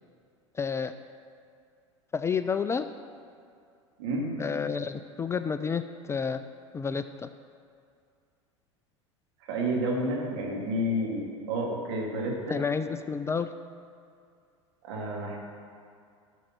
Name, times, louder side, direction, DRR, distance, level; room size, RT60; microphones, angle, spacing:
voice 1, 0.6-0.9 2.1-2.9 4.4-5.8 6.1-6.4 6.7-7.3 12.5-13.5, left 6 dB, 15° left, 10 dB, 0.3 m, -30 dB
voice 2, 4.0-4.3 9.5-12.6 14.8-15.4, right 1 dB, 60° right, -2 dB, 2.4 m, -30 dB
11.5 x 6.3 x 6.1 m, 2.4 s
hypercardioid pair, 85°, 16 cm